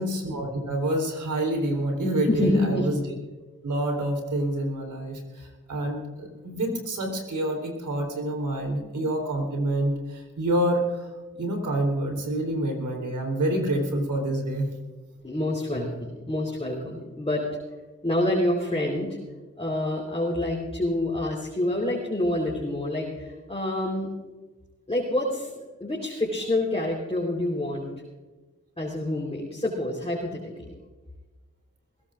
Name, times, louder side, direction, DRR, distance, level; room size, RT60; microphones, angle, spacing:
voice 1, 0.0-3.0 3.6-11.1 11.4-14.7, right 1 dB, 80° right, 2 dB, 3.8 m, -27 dB
voice 2, 2.3-2.9 15.2-17.4 18.0-19.1 19.6-24.1 24.9-27.9 28.8-30.7, left 1 dB, 20° left, -3 dB, 4.0 m, -27 dB
21.5 x 16.5 x 2.6 m, 1.3 s
cardioid pair, 40°, 30 cm